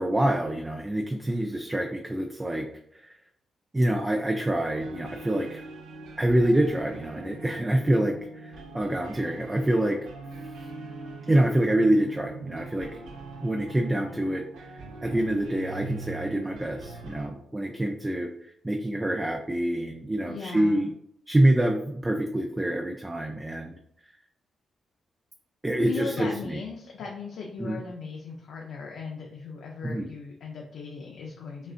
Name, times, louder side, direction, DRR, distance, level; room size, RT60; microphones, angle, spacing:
voice 1, 0.0-2.7 2.9-3.1 3.7-5.6 6.2-10.0 11.3-12.9 13.4-14.7 15.0-20.9 21.3-23.7 25.6-26.6 27.6-27.8 29.8-30.1, right 1 dB, 15° right, 3 dB, 0.5 m, -26 dB
sound 1, 4.7-17.3, right 3 dB, 90° right, 0.5 m, -42 dB
voice 2, 20.3-20.9 25.8-31.7, left 4 dB, 80° left, -1 dB, 0.6 m, -38 dB
5.3 x 2.5 x 2.5 m, 0.72 s
supercardioid pair, 60°, 0 cm